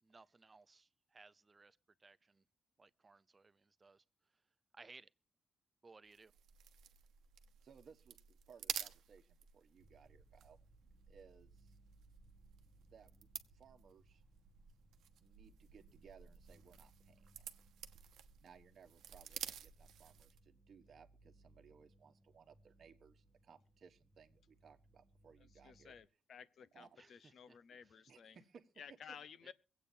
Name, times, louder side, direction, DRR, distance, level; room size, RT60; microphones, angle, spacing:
voice 1, 0.0-2.5 2.8-4.0 4.3-4.4 4.7-5.1 5.8-6.3 27.0-27.6 27.8-28.0 29.4-29.5, right 3 dB, 25° right, 0.6 m, -62 dB
sound 1, 6.1-20.5, right 10 dB, 90° right, 0.9 m, -52 dB
voice 2, 7.6-11.8 12.6-14.2 15.2-17.5 18.4-26.0 26.7-27.0 27.7-28.7 29.1-29.2, right 6 dB, 50° right, 1.2 m, -63 dB
sound 2, 9.8-26.1, right 2 dB, 10° left, 1.2 m, -68 dB
voice 3, 25.6-28.4 28.8-29.5, left 7 dB, 55° left, 0.7 m, -55 dB
24.5 x 8.4 x 2.7 m
cardioid pair, 135°, 0 cm